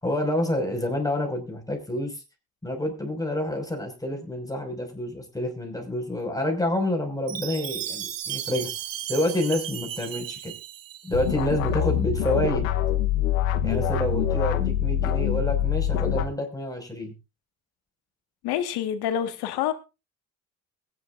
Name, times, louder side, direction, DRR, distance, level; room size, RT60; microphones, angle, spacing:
voice 1, 0.0-2.2 2.6-8.7 9.1-10.5 11.0-12.7 13.6-17.1, left 1 dB, 10° left, 5.5 m, -28 dB
Chime, 7.3-11.4, right 11 dB, 55° right, 1.4 m, -35 dB
sound 1, 11.1-16.3, left 9 dB, 85° left, 1.0 m, -24 dB
voice 2, 18.4-19.7, left 10 dB, 70° left, 1.8 m, -27 dB
22.0 x 10.5 x 2.6 m
hypercardioid pair, 50°, 39 cm